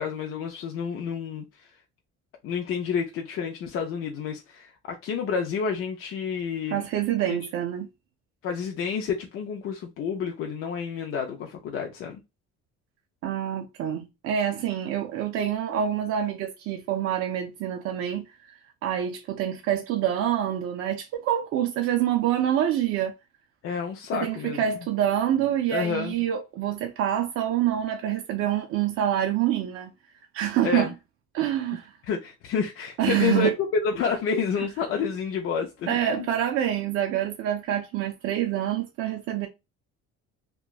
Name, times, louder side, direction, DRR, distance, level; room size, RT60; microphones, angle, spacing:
voice 1, 0.0-1.7 2.4-6.8 7.2-7.4 8.4-12.2 23.6-24.6 25.7-26.2 30.6-30.9 32.1-36.0, left 6 dB, 50° left, 0.4 m, -29 dB
voice 2, 6.7-7.9 13.2-23.1 24.1-29.9 30.3-30.9 31.3-31.9 33.0-33.5 34.6-34.7 35.9-39.5, right 10 dB, 50° right, 0.4 m, -26 dB
2.9 x 2.3 x 2.3 m
cardioid pair, 160°, 29 cm